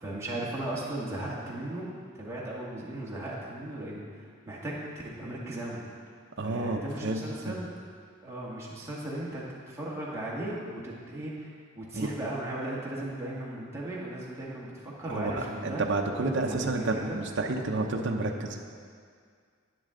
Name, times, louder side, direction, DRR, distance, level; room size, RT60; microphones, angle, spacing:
voice 1, 0.0-1.9 2.1-5.8 6.4-7.7 8.2-15.8 16.4-17.2, right 1 dB, 15° right, -6 dB, 1.8 m, -37 dB
voice 2, 6.4-7.6 11.9-12.1 15.1-18.6, right 2 dB, 55° right, 2 dB, 0.7 m, -30 dB
10.5 x 9.3 x 3.8 m, 2.1 s
head